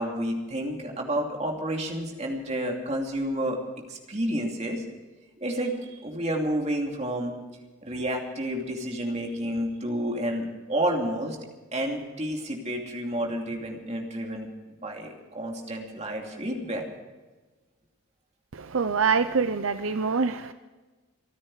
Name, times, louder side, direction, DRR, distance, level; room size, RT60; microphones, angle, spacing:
voice 1, 0.0-3.6 3.9-4.8 5.4-7.3 7.8-11.4 11.7-14.5 14.8-16.9, right 1 dB, 30° right, 1 dB, 2.7 m, -30 dB
voice 2, 18.5-20.5, right 5 dB, 70° right, 11 dB, 0.6 m, -25 dB
28.0 x 9.8 x 4.9 m, 1.2 s
head